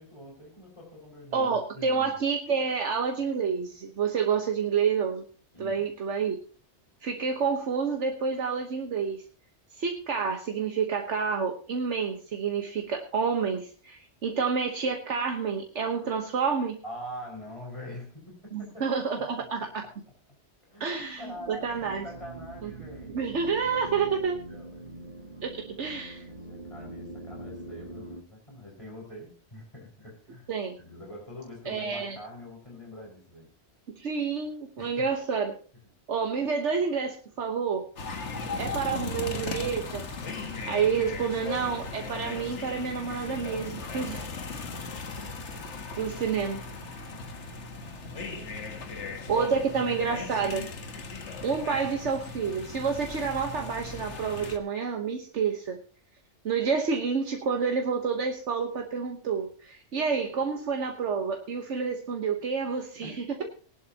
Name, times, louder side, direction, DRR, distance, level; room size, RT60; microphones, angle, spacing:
voice 1, 0.0-2.2 5.5-5.8 16.8-19.7 20.7-23.3 23.5-25.0 26.2-30.5 30.8-33.5 34.8-35.1 38.4-38.7 47.9-49.3 50.2-50.6 63.0-63.2, left 1 dB, 25° left, -1 dB, 5.4 m, -45 dB
voice 2, 1.3-5.2 5.6-6.4 7.0-9.2 9.7-16.8 18.5-19.8 20.8-22.0 22.6-22.7 23.1-24.4 25.4-26.2 30.5-30.8 31.7-32.2 33.9-35.5 36.1-37.9 38.6-40.1 40.7-44.3 46.0-47.0 49.3-50.7 51.4-55.8 56.4-63.1, right 5 dB, 75° right, 3 dB, 1.5 m, -29 dB
sound 1, 20.9-28.2, right 2 dB, 45° right, 1.6 m, -44 dB
sound 2, 38.0-54.6, left 4 dB, 75° left, 1.6 m, -37 dB
19.0 x 11.5 x 2.9 m, 0.39 s
omnidirectional pair, 1.2 m